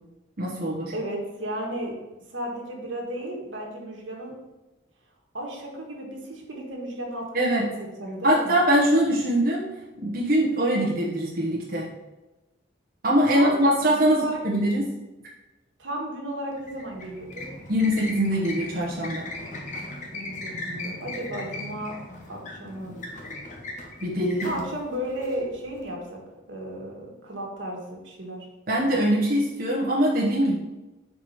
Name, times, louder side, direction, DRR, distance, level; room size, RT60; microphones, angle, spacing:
voice 1, 0.4-0.9 7.3-7.7 8.2-9.7 10.0-11.9 13.0-14.9 17.7-19.3 24.0-24.5 28.7-30.6, equal, 45° right, -5 dB, 1.0 m, -22 dB
voice 2, 0.9-1.9 2.3-4.3 5.3-8.6 13.3-14.4 15.8-17.5 20.1-22.0 22.3-22.9 24.4-26.2 26.5-28.5, right 1 dB, 75° right, -1 dB, 1.5 m, -34 dB
sound 1, 16.5-25.8, left 2 dB, 40° left, 1.0 m, -38 dB
4.8 x 4.7 x 5.5 m, 1.1 s
head